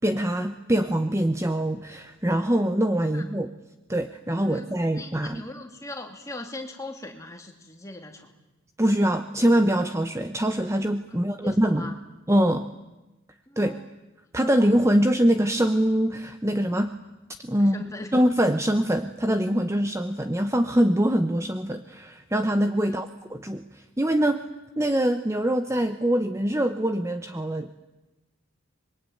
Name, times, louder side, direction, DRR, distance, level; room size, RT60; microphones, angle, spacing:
voice 1, 0.0-3.5 3.9-5.4 8.8-11.9 12.3-12.7 13.6-13.7 14.3-16.9 17.4-17.8 18.1-24.4 24.8-27.8, equal, 15° right, 8 dB, 0.9 m, -23 dB
voice 2, 4.4-8.3 11.1-12.0 13.5-13.9 17.6-18.1 22.8-23.1, left 2 dB, 15° left, 3 dB, 2.7 m, -40 dB
25.5 x 22.5 x 9.3 m, 1.0 s
head